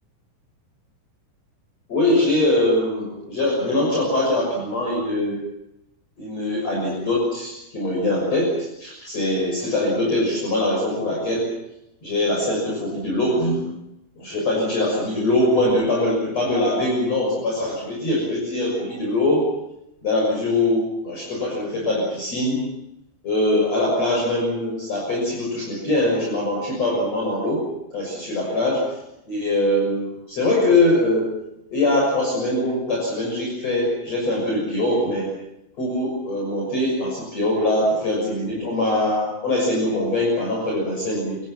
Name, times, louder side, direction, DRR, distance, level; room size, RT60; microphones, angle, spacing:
voice 1, 1.9-5.4 6.2-11.5 12.0-13.7 14.2-19.5 20.0-22.6 23.2-27.6 27.9-28.8 29.3-31.3 31.7-35.3 35.8-41.4, left 1 dB, 40° left, -2 dB, 7.6 m, -22 dB
29.0 x 24.5 x 5.9 m, 0.86 s
omnidirectional pair, 4.7 m